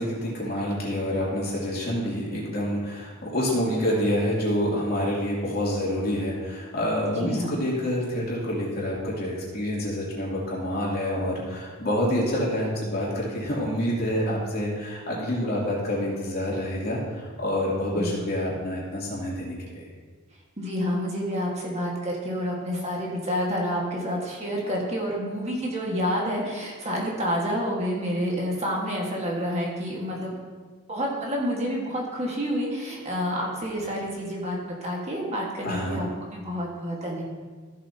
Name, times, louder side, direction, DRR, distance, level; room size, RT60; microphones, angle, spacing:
voice 1, 0.0-19.8 35.6-36.1, equal, 45° left, -6 dB, 2.8 m, -27 dB
voice 2, 7.2-7.5 17.9-18.2 20.6-30.3 30.9-37.2, equal, 30° right, -3 dB, 1.6 m, -29 dB
15.0 x 7.4 x 2.8 m, 1.5 s
head